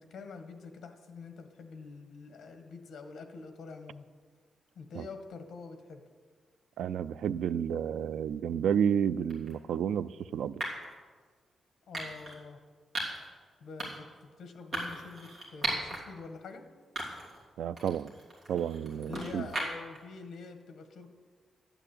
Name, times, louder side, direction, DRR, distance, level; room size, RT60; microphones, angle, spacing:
voice 1, 0.0-4.1 4.8-6.0 11.9-12.6 13.6-16.6 19.1-21.1, left 4 dB, 60° left, 6 dB, 1.7 m, -46 dB
voice 2, 6.8-10.6 17.6-18.1 18.5-19.5, right 8 dB, 85° right, 16 dB, 0.4 m, -31 dB
sound 1, 9.3-9.5 10.6-10.9 11.9-12.4 12.9-13.3 13.8-14.1 14.7-16.0 16.4-16.5 17.0-17.4 17.8-20.0, right 1 dB, 30° right, 3.3 m, -37 dB
12.5 x 9.0 x 8.4 m, 1.5 s
wide cardioid pair, 170°, 0 cm